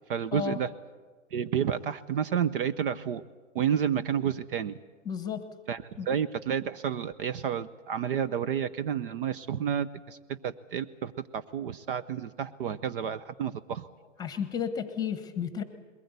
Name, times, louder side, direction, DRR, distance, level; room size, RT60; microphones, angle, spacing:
voice 1, 0.1-0.7 1.3-3.3 3.5-4.8 5.7-13.9, right 8 dB, 45° right, 15 dB, 0.8 m, -30 dB
voice 2, 5.0-5.5 6.0-6.1 14.2-15.6, left 7 dB, 10° left, 10 dB, 1.2 m, -32 dB
21.5 x 19.5 x 8.2 m, 1.4 s
hypercardioid pair, 145°, 38 cm